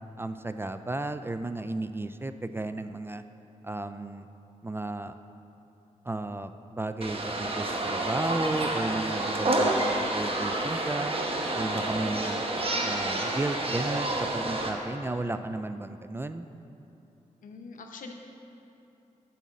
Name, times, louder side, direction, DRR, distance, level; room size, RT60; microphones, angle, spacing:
voice 1, 0.2-3.2 3.6-4.3 4.6-5.1 6.0-11.1 11.5-12.4 12.8-16.5, right 2 dB, 15° right, 10 dB, 0.3 m, -33 dB
sound 1, 7.0-14.7, right 2 dB, 45° right, 1.1 m, -29 dB
voice 2, 17.4-18.1, left 4 dB, 80° left, 3 dB, 0.8 m, -43 dB
9.7 x 4.1 x 7.4 m, 2.8 s
cardioid pair, 65°, 13 cm